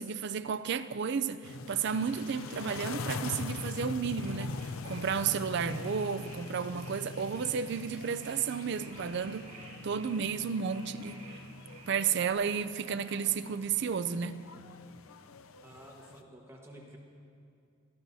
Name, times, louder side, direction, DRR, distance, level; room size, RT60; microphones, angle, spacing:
voice 1, 0.0-9.5 9.8-11.2 11.9-14.4, right 6 dB, 55° right, 0.4 m, -32 dB
sound 1, 1.4-16.2, left 3 dB, 70° left, 0.5 m, -43 dB
sound 2, 1.8-12.3, right 2 dB, 30° right, 2.8 m, -54 dB
voice 2, 15.6-17.0, right 1 dB, 10° right, 1.3 m, -51 dB
23.5 x 14.0 x 2.7 m
head